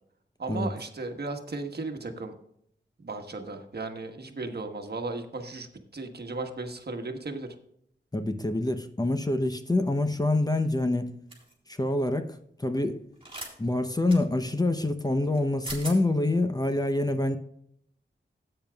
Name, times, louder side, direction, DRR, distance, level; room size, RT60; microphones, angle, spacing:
voice 1, 0.4-2.3 3.0-5.7 5.9-7.5, right 3 dB, 55° right, 1.3 m, -35 dB
voice 2, 8.1-11.1 11.7-13.0 13.6-17.4, left 2 dB, 20° left, 0.7 m, -26 dB
sound 1, 11.3-11.5 13.2-13.5 14.1-14.2 15.3-15.4 15.6-16.0, right 2 dB, 30° right, 3.8 m, -38 dB
15.5 x 8.9 x 2.3 m
wide cardioid pair, 90°, 20 cm